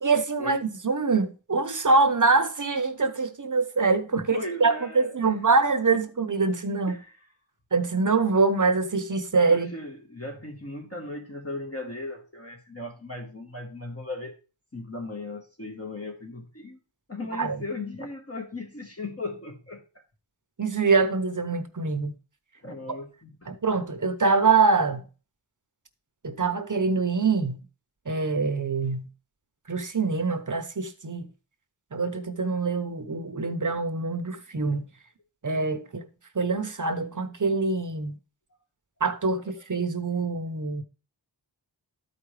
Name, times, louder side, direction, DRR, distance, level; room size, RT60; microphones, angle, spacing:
voice 1, 0.0-6.9 7.7-9.7 17.4-17.6 20.6-22.1 23.5-25.0 26.2-27.6 28.1-29.1 29.7-31.3 31.9-34.9 35.4-36.0 36.3-38.2 39.0-40.8, right 4 dB, 40° right, 0.9 m, -24 dB
voice 2, 4.2-5.4 6.9-7.1 9.5-14.4 14.7-16.8 17.1-19.8 22.6-23.5, left 2 dB, 30° left, 1.4 m, -37 dB
12.5 x 4.9 x 3.3 m
wide cardioid pair, 60°, 45 cm